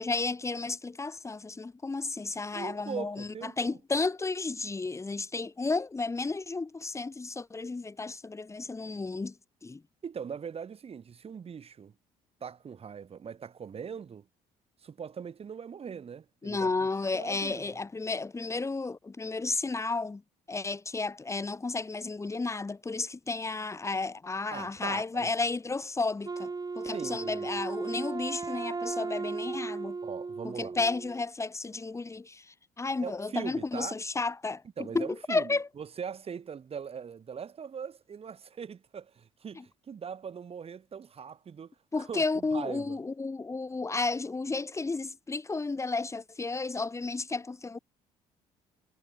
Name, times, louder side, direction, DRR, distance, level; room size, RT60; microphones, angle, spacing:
voice 1, 0.0-9.4 9.6-9.8 16.4-20.2 20.5-30.0 30.4-34.6 34.9-35.7 39.5-39.6 41.9-47.8, left 3 dB, 20° left, 1.6 m, -32 dB
voice 2, 2.5-3.8 10.0-11.9 12.4-14.3 14.8-16.7 17.1-17.8 24.5-25.3 26.9-27.5 30.0-30.8 33.0-33.9 34.8-43.0, right 7 dB, 45° right, 5.0 m, -41 dB
Wind instrument woodwind instrument, 26.2-31.2, right 4 dB, 30° right, 7.5 m, -36 dB
supercardioid pair, 80°, 14 cm